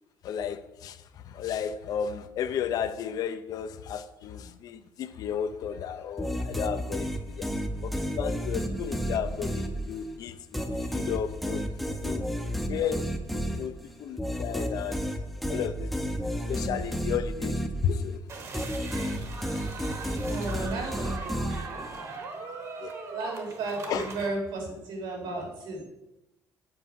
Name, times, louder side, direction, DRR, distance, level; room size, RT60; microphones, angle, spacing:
voice 1, 0.2-7.5 7.8-11.6 12.0-12.3 12.7-15.1 15.5-16.2 16.5-18.2 22.8-22.9 23.9-24.0, left 8 dB, 50° left, 0.6 m, -33 dB
sound 1, 6.2-10.2 10.5-18.2 18.5-22.0, equal, ahead, 0.6 m, -32 dB
sound 2, 18.3-24.3, right 4 dB, 35° right, 1.3 m, -40 dB
voice 2, 20.2-21.9 23.1-25.8, right 3 dB, 80° right, 3.7 m, -34 dB
7.9 x 5.0 x 7.5 m
cardioid pair, 180°, 8 cm